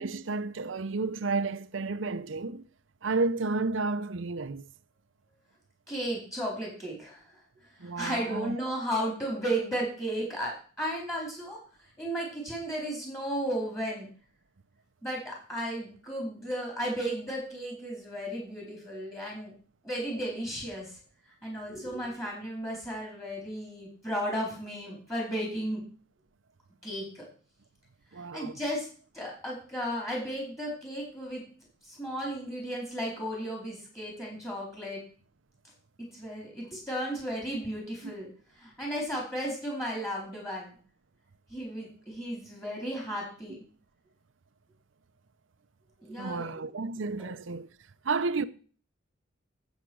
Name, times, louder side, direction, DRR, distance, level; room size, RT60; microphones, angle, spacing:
voice 1, 0.0-2.6 3.0-4.6 7.8-8.6 28.1-28.6 38.0-38.1 46.2-47.7 48.0-48.4, right 3 dB, 90° right, 0.7 m, -31 dB
voice 2, 5.9-7.4 7.8-11.6 12.0-14.1 15.0-19.5 19.8-20.9 21.4-25.8 26.8-27.2 28.2-28.9 29.1-31.4 31.8-35.0 36.1-38.3 38.6-40.8 41.5-43.6 46.0-46.5 48.4-48.5, equal, 15° left, 4.1 m, -34 dB
10.0 x 8.1 x 6.2 m
head